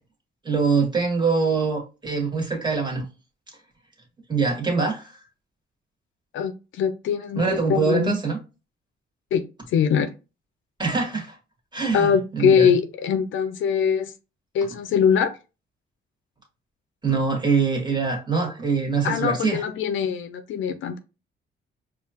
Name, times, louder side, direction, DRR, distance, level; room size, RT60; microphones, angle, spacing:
voice 1, 0.4-3.0 4.3-5.1 7.3-8.4 10.8-11.3 11.7-12.7 17.0-19.6, right 4 dB, 20° right, 1.7 m, -23 dB
voice 2, 6.3-8.1 9.3-9.4 9.7-10.1 11.9-14.1 14.5-15.3 19.0-21.0, left 7 dB, 75° left, 0.6 m, -22 dB
4.7 x 2.5 x 2.9 m
cardioid pair, 90°, 20 cm